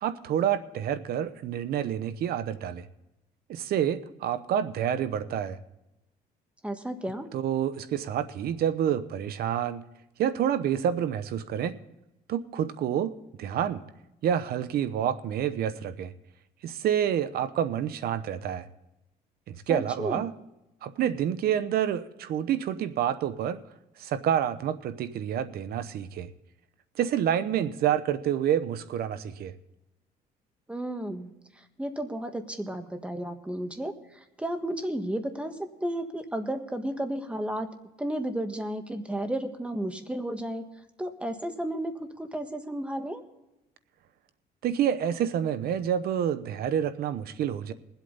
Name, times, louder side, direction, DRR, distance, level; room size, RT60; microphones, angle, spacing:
voice 1, 0.0-2.9 3.5-5.6 7.3-9.8 10.2-11.8 12.3-13.8 14.2-16.1 16.6-18.7 19.5-20.3 20.8-23.6 24.0-26.3 27.0-29.5 44.6-47.7, right 9 dB, 65° right, 12 dB, 0.9 m, -28 dB
voice 2, 6.6-7.3 19.7-20.2 30.7-31.3 31.5-37.7 38.0-40.6 41.0-43.2, right 1 dB, 5° right, 7 dB, 1.5 m, -33 dB
21.5 x 8.2 x 4.0 m, 0.92 s
cardioid pair, 110°, 17 cm